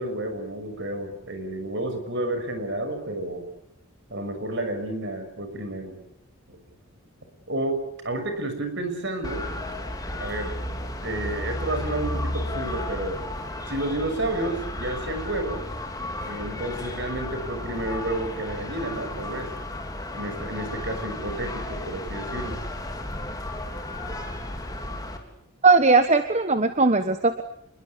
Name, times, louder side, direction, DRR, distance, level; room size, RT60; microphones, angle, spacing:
voice 1, 0.0-3.4 4.1-6.0 6.5-6.6 7.5-9.5 10.2-10.6 11.0-13.2 13.7-15.6 16.2-19.5 20.1-22.6, right 1 dB, 55° right, 8 dB, 6.4 m, -30 dB
sound 1, 9.2-25.2, left 1 dB, 15° left, 3.6 m, -33 dB
voice 2, 25.6-27.4, right 3 dB, 30° right, 9 dB, 1.3 m, -19 dB
27.5 x 23.0 x 8.5 m, 0.70 s
head